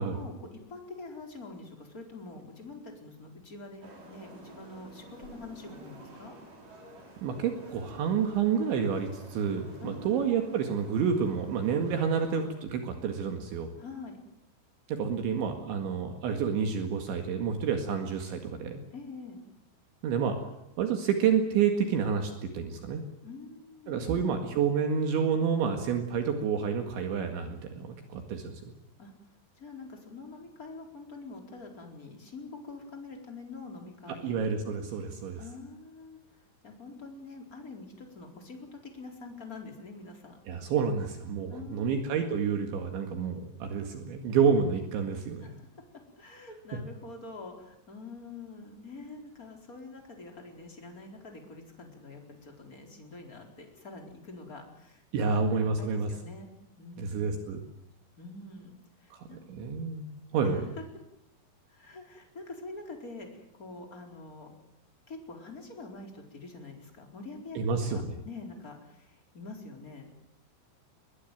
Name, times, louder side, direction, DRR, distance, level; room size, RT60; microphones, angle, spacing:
voice 1, 0.0-6.3 9.8-10.3 13.8-14.2 18.9-19.4 23.2-24.5 29.0-29.1 29.6-34.4 35.4-36.2 36.6-40.4 41.5-42.1 45.4-45.7 46.2-56.5 56.8-57.5 58.2-59.4 60.4-60.7 61.7-64.5 65.1-67.6 67.9-70.1, left 3 dB, 20° left, 2 dB, 4.1 m, -45 dB
sound 1, 3.8-12.5, right 2 dB, 40° right, 6.2 m, -50 dB
voice 2, 7.2-13.7 14.9-18.8 20.0-20.4 20.8-23.0 23.9-28.7 34.2-35.4 40.5-45.5 55.1-56.1 57.0-57.6 59.1-60.7 67.6-68.1, right 6 dB, 70° right, 5 dB, 4.1 m, -29 dB
21.5 x 21.0 x 9.3 m, 0.81 s
omnidirectional pair, 5.8 m